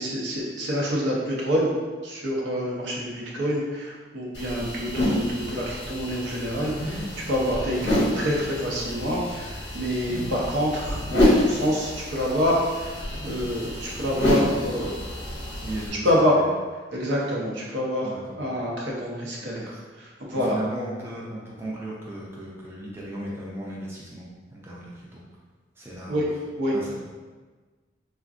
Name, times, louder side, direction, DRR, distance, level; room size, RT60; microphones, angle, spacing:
voice 1, 0.0-1.7 2.0-14.9 16.0-16.3 16.9-18.1 18.4-19.7 20.0-20.6 26.1-26.2 26.6-26.9, equal, 70° right, -4 dB, 0.7 m, -27 dB
sound 1, 4.3-15.9, left 1 dB, 65° left, 0.7 m, -28 dB
voice 2, 15.6-16.5 18.0-18.5 19.7-19.8 20.3-24.3 24.5-25.2 25.8-26.4 26.7-26.9, right 1 dB, 15° right, -5 dB, 0.4 m, -36 dB
3.4 x 2.1 x 2.5 m, 1.3 s
head